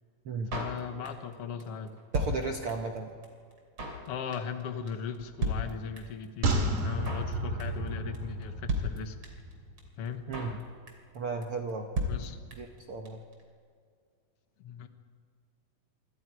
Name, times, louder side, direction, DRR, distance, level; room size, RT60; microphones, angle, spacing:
voice 1, 0.5-1.9 4.1-9.2 10.0-10.3 12.1-12.5 14.6-14.9, left 6 dB, 65° left, 7 dB, 1.5 m, -38 dB
Drum kit, 0.5-1.3 1.6-1.7 1.9-3.0 3.2-3.3 3.5-4.1 4.3-4.6 4.9-5.0 5.1-5.2 5.4-6.2 6.5-6.6 6.8-7.3 7.6-7.9 8.1-8.2 8.4-8.5 8.7-9.5 9.8-9.9 10.1-10.6 10.9-11.2 11.4-11.5 11.7-11.8 12.0-12.8 13.1-13.2 13.3-13.4, equal, 35° right, 3.4 m, -34 dB
voice 2, 2.1-3.1 10.3-10.5 11.1-11.9 12.6-13.2, right 4 dB, 75° right, 3 dB, 1.2 m, -34 dB
sound 1, 6.4-9.9 10.2-10.3, right 1 dB, 50° right, 3.3 m, -32 dB
26.0 x 26.0 x 4.8 m, 2.1 s
omnidirectional pair, 4.4 m